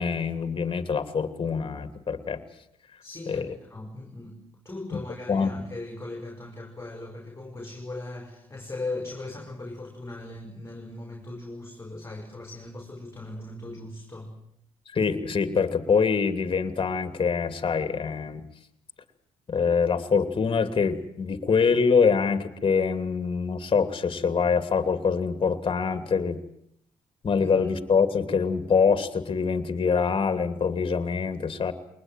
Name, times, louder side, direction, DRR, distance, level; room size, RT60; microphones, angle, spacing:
voice 1, 0.0-2.4 3.3-3.6 4.9-5.0 5.3-5.5 14.9-18.4 19.5-26.4 27.2-31.7, left 5 dB, 40° left, 11 dB, 2.7 m, -24 dB
voice 2, 3.0-14.3 27.4-27.5, left 2 dB, 20° left, 3 dB, 5.0 m, -39 dB
22.0 x 20.0 x 9.3 m, 0.72 s
supercardioid pair, 65°, 13 cm